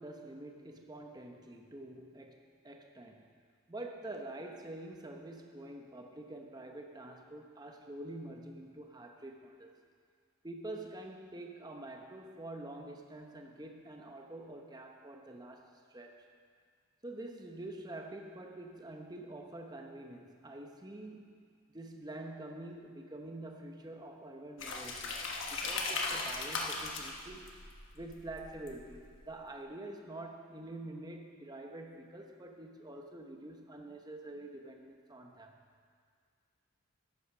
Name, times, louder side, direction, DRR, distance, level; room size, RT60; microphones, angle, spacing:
voice 1, 0.0-3.3 3.7-9.7 10.4-16.2 17.0-21.5 21.7-25.2 25.5-27.6 27.9-35.6, right 1 dB, 20° right, 3 dB, 0.8 m, -46 dB
pouring water into the bath (one water tap), 24.6-29.2, left 3 dB, 55° left, 1.3 m, -38 dB
11.0 x 8.7 x 6.0 m, 2.1 s
head